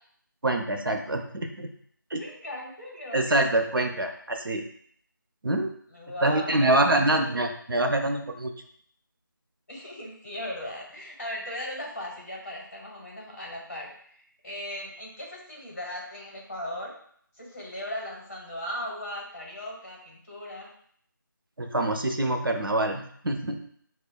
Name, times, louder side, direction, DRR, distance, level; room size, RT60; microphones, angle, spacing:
voice 1, 0.4-1.7 2.1-2.2 3.1-4.6 5.4-5.7 6.2-8.5 21.6-23.6, right 1 dB, 90° right, 4 dB, 0.6 m, -25 dB
voice 2, 2.2-3.5 5.9-7.2 9.7-16.9 17.3-20.7, left 1 dB, 40° left, -2 dB, 1.3 m, -38 dB
5.0 x 2.1 x 2.3 m, 0.63 s
figure-of-eight pair, 170°, 11 cm